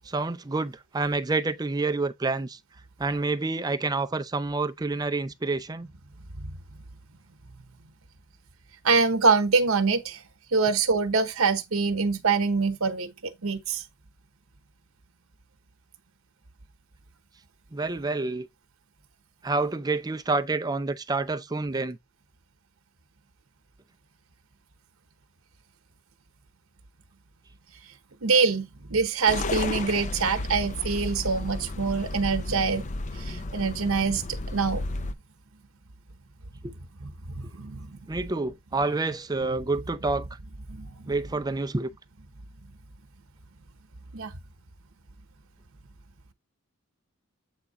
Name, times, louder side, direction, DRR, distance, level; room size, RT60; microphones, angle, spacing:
voice 1, 0.1-2.6 3.0-5.9 17.7-18.5 19.4-22.0 36.6-36.7 38.1-40.3 41.1-41.9, right 3 dB, 20° right, 0.5 m, -28 dB
voice 2, 8.8-10.2 10.5-13.8 28.2-32.8 33.1-34.2 34.5-34.9 37.0-37.1 37.4-38.0 40.7-41.1 44.1-44.3, right 4 dB, 80° right, 1.0 m, -25 dB
sound 1, 29.3-35.1, left 2 dB, 35° left, 0.5 m, -33 dB
8.0 x 3.6 x 4.0 m
head